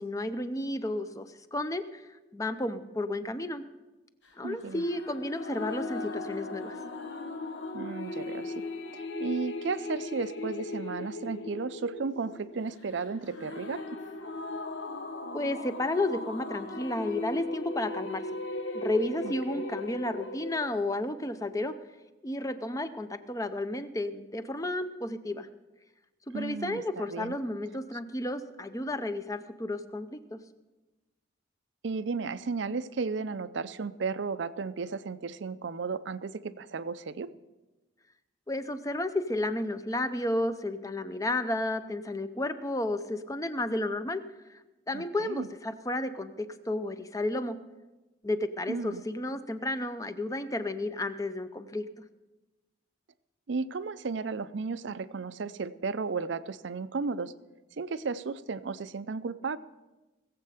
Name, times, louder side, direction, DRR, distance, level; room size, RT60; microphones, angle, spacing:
voice 1, 0.0-2.1 2.3-3.6 4.4-6.8 15.3-18.2 18.7-21.7 22.2-25.5 26.3-30.4 38.5-44.2 44.9-47.6 48.2-51.8, left 1 dB, 15° left, 11 dB, 0.6 m, -32 dB
voice 2, 4.4-4.9 7.7-8.6 8.9-14.0 19.2-19.6 26.3-27.3 31.8-37.3 44.9-45.5 48.7-49.0 53.5-57.3 57.8-59.6, right 4 dB, 65° right, 14 dB, 0.5 m, -34 dB
sound 1, 4.7-20.7, left 2 dB, 70° left, 1.1 m, -38 dB
20.0 x 7.7 x 4.9 m, 1.1 s
head